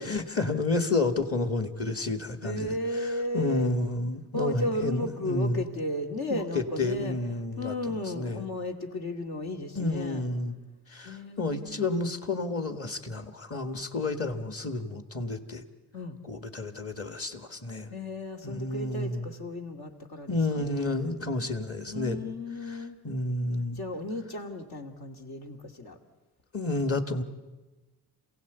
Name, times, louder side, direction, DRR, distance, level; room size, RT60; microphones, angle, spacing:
voice 1, 0.0-5.6 6.3-8.5 9.8-10.6 10.9-15.6 16.2-17.9 18.4-19.3 20.3-22.3 22.7-23.8 26.5-27.2, left 2 dB, 35° left, 8 dB, 1.8 m, -30 dB
voice 2, 2.4-3.7 4.3-7.2 7.6-10.2 11.0-11.9 15.9-16.2 17.9-21.1 21.9-23.0 23.7-26.0, left 1 dB, 70° left, 4 dB, 2.6 m, -34 dB
27.0 x 17.0 x 8.2 m, 1.2 s
cardioid pair, 115°, 39 cm